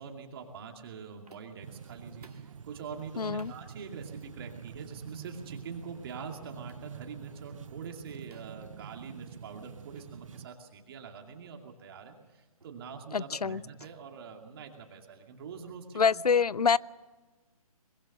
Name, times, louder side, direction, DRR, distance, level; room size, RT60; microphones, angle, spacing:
voice 1, 0.0-16.2, right 6 dB, 40° right, 3 dB, 2.5 m, -44 dB
sound 1, 1.3-1.7 2.2-2.6 3.4-3.6 4.4-4.6 5.5-5.7 6.7-6.9 8.3-8.7 9.9-10.1 10.5-10.7 11.4-11.7 12.6-12.8 13.8-15.0, right 3 dB, 80° right, 2.5 m, -58 dB
sound 2, 1.6-10.5, right 7 dB, 60° right, 0.7 m, -47 dB
voice 2, 3.2-3.5 13.1-13.6 15.9-16.8, left 6 dB, 85° left, 22 dB, 0.6 m, -26 dB
23.0 x 21.5 x 6.7 m, 1.3 s
figure-of-eight pair, 145°, 19 cm